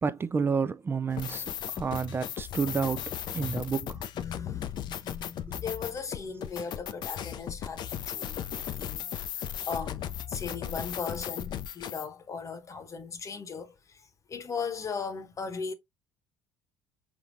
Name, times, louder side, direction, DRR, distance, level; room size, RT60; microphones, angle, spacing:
voice 1, 0.0-4.0 5.5-5.6, right 5 dB, 25° right, 0.4 m, -30 dB
sound 1, 1.1-12.1, left 10 dB, 55° left, 0.5 m, -36 dB
voice 2, 3.4-3.7 4.1-9.3 9.7-13.7 14.3-15.7, left 5 dB, 35° left, 1.0 m, -38 dB
4.4 x 3.6 x 2.6 m
hypercardioid pair, 70°, 9 cm